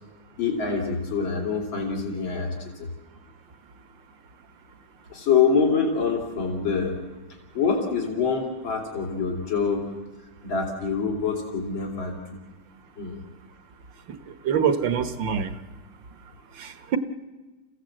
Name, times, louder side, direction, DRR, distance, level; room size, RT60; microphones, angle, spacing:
voice 1, 0.4-2.9 5.1-7.0 7.5-9.9 10.4-12.4 13.0-13.2, left 5 dB, 85° left, 1 dB, 3.6 m, -25 dB
voice 2, 14.3-15.6 16.6-17.0, right 7 dB, 75° right, 10 dB, 2.0 m, -25 dB
29.0 x 16.0 x 7.7 m, 1.2 s
omnidirectional pair, 2.1 m